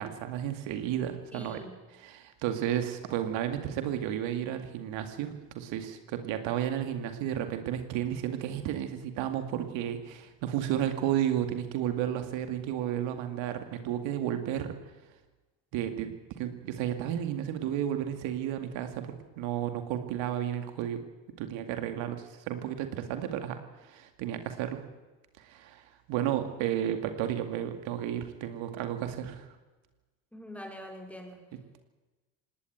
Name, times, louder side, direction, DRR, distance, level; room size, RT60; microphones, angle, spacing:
voice 1, 0.0-1.6 1.9-14.7 15.7-21.0 21.4-24.8 25.4-29.5, right 10 dB, 75° right, 7 dB, 2.3 m, -32 dB
voice 2, 1.3-1.8 30.3-31.5, equal, 5° left, 3 dB, 4.9 m, -44 dB
18.5 x 18.5 x 9.4 m, 1.2 s
supercardioid pair, 100°, 46 cm